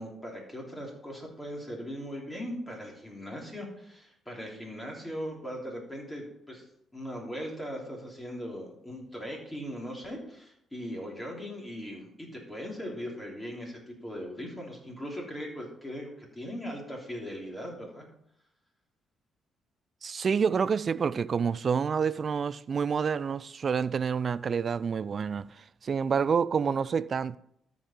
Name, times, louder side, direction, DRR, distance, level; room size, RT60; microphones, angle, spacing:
voice 1, 0.0-6.6 6.9-18.1, equal, 15° left, 3.1 m, -39 dB
voice 2, 20.0-27.4, right 6 dB, 45° right, 0.3 m, -28 dB
13.0 x 5.4 x 4.3 m
cardioid pair, 90°, 0 cm